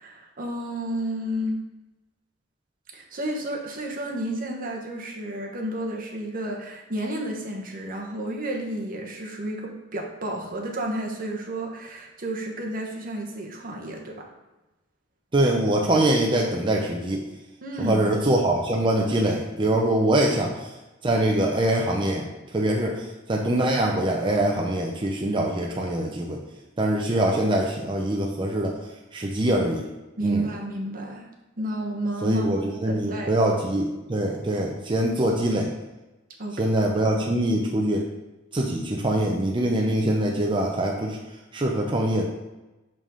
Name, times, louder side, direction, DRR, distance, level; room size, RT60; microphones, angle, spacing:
voice 1, 0.0-1.6 2.9-14.3 17.6-18.1 30.2-31.3 31.6-33.3 36.4-36.7 37.1-37.2, right 1 dB, 45° right, 0 dB, 1.1 m, -31 dB
voice 2, 15.3-17.2 17.9-20.7 21.0-22.2 22.5-26.4 26.8-28.8 29.1-29.9 30.2-30.5 32.2-35.7 36.6-38.1 38.5-41.2 41.5-42.3, right 1 dB, 25° right, -1 dB, 0.6 m, -23 dB
5.5 x 5.2 x 3.7 m, 1.0 s
head